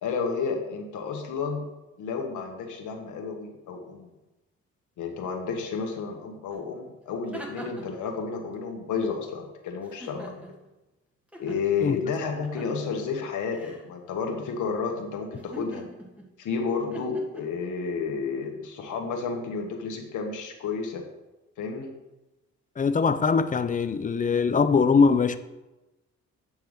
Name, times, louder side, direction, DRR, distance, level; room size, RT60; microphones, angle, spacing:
voice 1, 0.0-1.6 2.0-4.1 5.0-10.4 11.4-15.8 16.4-21.0 21.6-21.9, left 5 dB, 75° left, 1.4 m, -31 dB
sound 1, 6.5-6.6 7.0-8.0 9.8-10.7 11.3-11.6 12.3-12.8 13.5-13.9 15.3-16.3 16.9-17.4, right 1 dB, 5° right, 1.5 m, -42 dB
voice 2, 22.8-25.4, left 5 dB, 25° left, 0.5 m, -22 dB
8.7 x 3.5 x 6.4 m
cardioid pair, 90°, 30 cm